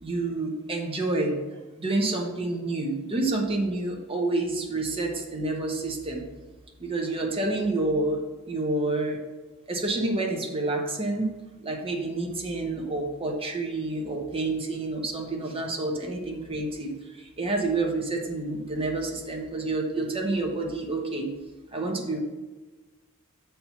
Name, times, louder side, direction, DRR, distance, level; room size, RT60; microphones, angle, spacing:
voice 1, 0.0-1.4 1.8-6.2 6.8-8.2 8.5-9.2 9.7-11.3 11.6-21.3 21.7-22.2, right 2 dB, 25° right, 0 dB, 1.1 m, -28 dB
7.4 x 4.5 x 5.7 m, 1.2 s
head